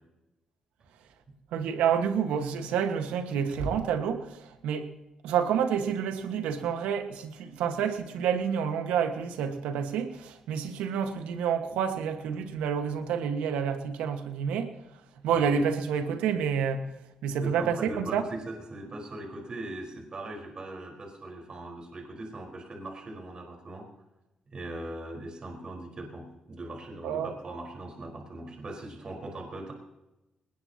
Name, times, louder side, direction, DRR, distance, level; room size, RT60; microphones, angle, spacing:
voice 1, 1.5-4.9 5.2-14.7 15.2-16.9 17.2-18.2 27.0-27.3, right 7 dB, 90° right, 1.5 m, -29 dB
voice 2, 17.4-23.8 24.5-29.7, right 2 dB, 45° right, 4.5 m, -40 dB
20.5 x 19.5 x 2.9 m
supercardioid pair, 65°, 2 cm